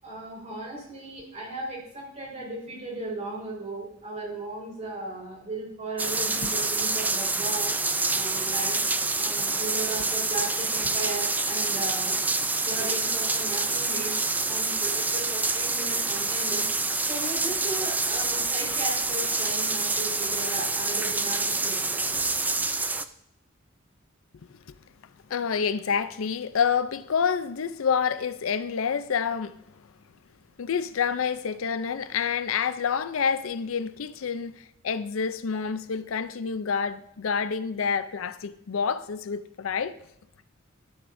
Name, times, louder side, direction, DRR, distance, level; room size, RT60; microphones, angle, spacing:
voice 1, 0.0-7.7 8.1-8.8 9.2-12.2 12.6-14.1 14.4-16.6 17.0-22.0, right 2 dB, 35° right, 4.7 m, -36 dB
sound 1, 6.0-23.1, right 3 dB, 10° right, 0.4 m, -27 dB
voice 2, 25.3-29.6 30.6-40.0, left 6 dB, 80° left, 0.5 m, -28 dB
13.0 x 11.5 x 2.6 m
head